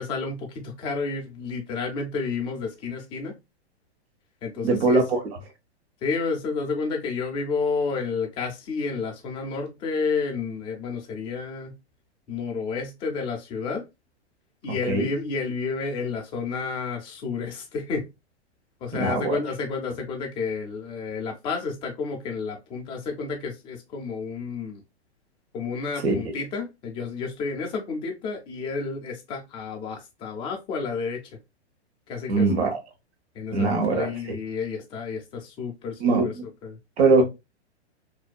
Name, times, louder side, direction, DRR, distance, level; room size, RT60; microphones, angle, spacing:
voice 1, 0.0-3.3 4.4-5.0 6.0-11.7 12.3-13.9 14.6-18.1 18.8-24.8 25.5-31.2 32.1-32.7 33.3-36.3 36.6-36.8, left 4 dB, 15° left, 0.4 m, -30 dB
voice 2, 4.6-5.2 14.9-15.1 18.9-19.4 26.0-26.1 32.3-32.8 33.5-34.1 36.0-36.3 37.0-37.2, right 3 dB, 65° right, 1.1 m, -21 dB
2.6 x 2.2 x 2.2 m
hypercardioid pair, 135°, 34 cm